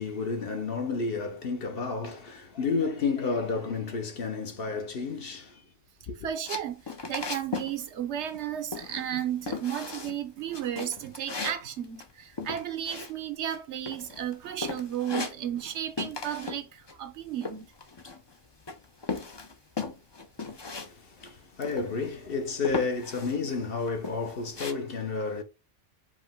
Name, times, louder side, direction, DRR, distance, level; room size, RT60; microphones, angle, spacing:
voice 1, 0.0-5.6 6.1-6.2 20.8-25.4, left 4 dB, 55° left, 1.0 m, -31 dB
voice 2, 6.2-17.7, right 10 dB, 75° right, 0.9 m, -34 dB
sound 1, 6.5-8.4 8.7-9.2 9.5-10.2 10.5-13.6 13.9-14.3 14.6-15.7 16.0-16.6 16.9-18.3 18.7-20.9 21.2-21.3 21.6-22.2 22.6-23.4 23.8-24.7, left 4 dB, 30° left, 0.5 m, -37 dB
5.0 x 2.9 x 3.5 m
omnidirectional pair, 1.2 m